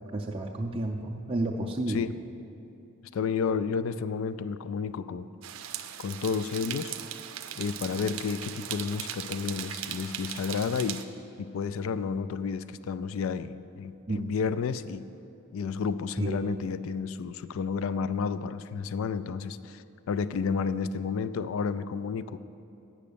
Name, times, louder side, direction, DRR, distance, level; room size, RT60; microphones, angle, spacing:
voice 1, 0.1-2.0 14.1-14.3 16.2-16.4, right 2 dB, 25° right, -1 dB, 0.4 m, -31 dB
voice 2, 3.1-5.3 6.0-7.0 7.6-11.1 11.4-15.0 15.5-22.4, left 5 dB, 75° left, 14 dB, 0.3 m, -31 dB
sound 1, 5.4-11.0, right 11 dB, 90° right, 0.5 m, -38 dB
8.6 x 6.3 x 6.8 m, 2.8 s
head